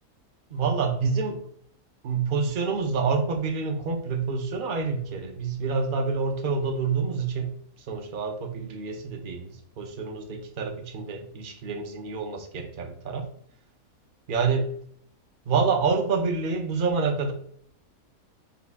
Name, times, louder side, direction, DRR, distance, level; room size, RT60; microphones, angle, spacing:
voice 1, 0.5-1.4 2.0-7.5 7.9-13.3 14.3-14.7 15.5-17.3, right 5 dB, 50° right, 4 dB, 0.6 m, -27 dB
5.6 x 2.3 x 3.4 m, 0.64 s
omnidirectional pair, 1.6 m